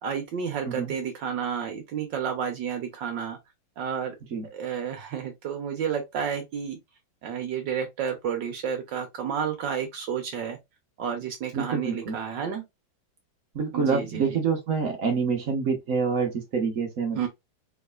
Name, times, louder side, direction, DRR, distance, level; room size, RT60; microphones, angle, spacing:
voice 1, 0.0-3.4 3.8-4.1 4.5-6.8 7.2-10.6 11.0-12.6 13.7-14.4 17.2-17.3, right 7 dB, 70° right, 1.4 m, -31 dB
voice 2, 11.5-12.2 13.5-17.3, right 5 dB, 55° right, 1.0 m, -27 dB
3.6 x 3.1 x 2.3 m
omnidirectional pair, 2.2 m